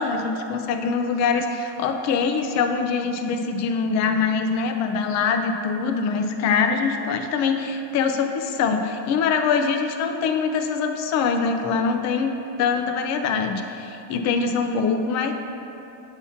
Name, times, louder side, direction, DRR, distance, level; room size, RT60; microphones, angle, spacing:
voice 1, 0.0-12.3 12.6-15.3, left 5 dB, 40° left, 6 dB, 0.4 m, -23 dB
7.0 x 2.9 x 5.6 m, 2.9 s
cardioid pair, 140°, 48 cm